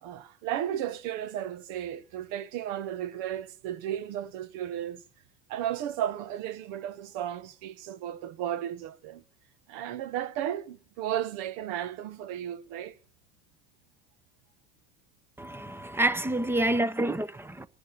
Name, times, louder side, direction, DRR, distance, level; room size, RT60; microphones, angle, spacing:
voice 1, 0.0-5.0 5.5-9.2 9.7-13.0, right 11 dB, 65° right, 1.1 m, -34 dB
voice 2, 15.4-17.7, right 1 dB, 5° right, 0.7 m, -28 dB
29.5 x 11.0 x 4.3 m
hypercardioid pair, 80°, 31 cm